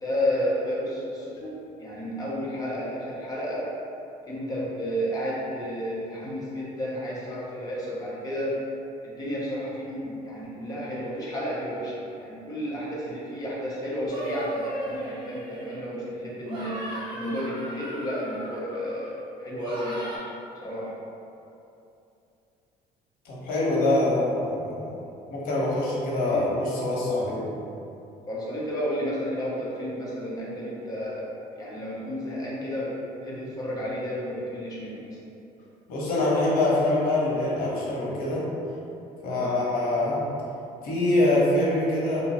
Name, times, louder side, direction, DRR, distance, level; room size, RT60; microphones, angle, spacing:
voice 1, 0.0-3.7 4.2-8.5 9.0-11.9 12.2-20.1 20.6-20.9 26.3-26.4 28.3-31.3 31.5-32.9 33.2-35.1 39.3-39.6, equal, 25° left, -7 dB, 0.8 m, -32 dB
sound 1, 14.1-16.0 16.4-19.1 19.6-20.2, right 1 dB, 35° right, 0.9 m, -36 dB
voice 2, 23.2-25.0 25.3-27.4 35.9-38.5 39.2-40.3 40.8-42.2, left 2 dB, 65° left, -5 dB, 1.0 m, -24 dB
2.9 x 2.2 x 4.1 m, 2.8 s
cardioid pair, 150°, 16 cm